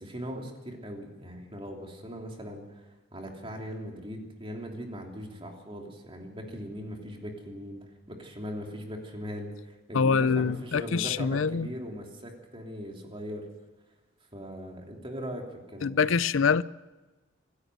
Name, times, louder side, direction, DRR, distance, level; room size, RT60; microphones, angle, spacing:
voice 1, 0.0-2.8 3.1-13.5 14.3-16.1, equal, 25° right, 3.1 m, -40 dB
voice 2, 9.9-11.7 15.8-16.6, left 5 dB, 75° left, 0.6 m, -25 dB
26.5 x 13.5 x 7.9 m
head